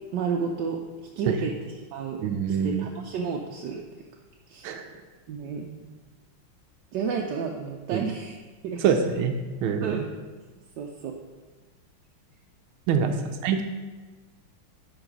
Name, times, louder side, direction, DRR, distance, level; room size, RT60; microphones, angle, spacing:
voice 1, 0.1-3.8 4.5-4.7 5.3-5.8 6.9-8.4 8.6-9.2 9.8-10.1 10.8-11.2 12.9-13.3, right 6 dB, 70° right, 1 dB, 1.2 m, -32 dB
voice 2, 2.2-2.9 4.6-4.8 7.9-8.0 8.8-9.3 9.6-10.0 12.9-13.1 13.4-13.6, right 7 dB, 85° right, 6 dB, 1.5 m, -24 dB
10.5 x 4.0 x 6.0 m, 1.3 s
omnidirectional pair, 2.2 m